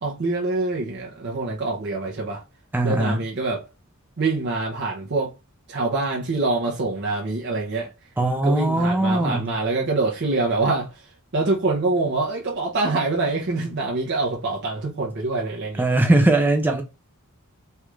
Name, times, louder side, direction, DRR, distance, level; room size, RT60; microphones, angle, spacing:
voice 1, 0.0-2.4 2.8-3.6 4.2-5.3 5.7-7.9 8.4-15.8, right 3 dB, 50° right, 0.6 m, -25 dB
voice 2, 2.7-3.2 8.2-9.5 15.8-16.8, right 2 dB, 10° right, 0.3 m, -20 dB
3.2 x 2.4 x 3.0 m
head